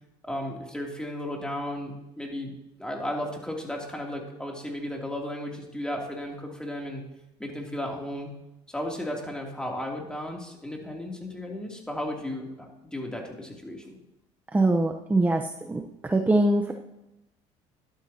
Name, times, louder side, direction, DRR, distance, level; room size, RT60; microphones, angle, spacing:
voice 1, 0.2-2.5 2.8-7.0 7.4-8.3 8.7-14.0, left 1 dB, 5° left, 0 dB, 2.7 m, -34 dB
voice 2, 14.5-15.4 15.7-16.7, right 2 dB, 15° right, 4 dB, 0.8 m, -23 dB
13.0 x 11.5 x 2.8 m, 0.94 s
supercardioid pair, 95°, 13 cm